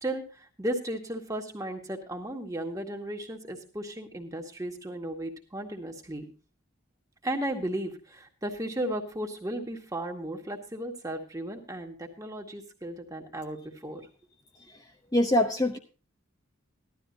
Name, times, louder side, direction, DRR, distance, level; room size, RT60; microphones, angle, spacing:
voice 1, 0.0-6.3 7.2-14.0, right 1 dB, 15° right, 2 dB, 1.9 m, -35 dB
voice 2, 15.1-15.8, left 1 dB, 15° left, 3 dB, 0.8 m, -23 dB
16.5 x 12.5 x 2.8 m, 0.35 s
head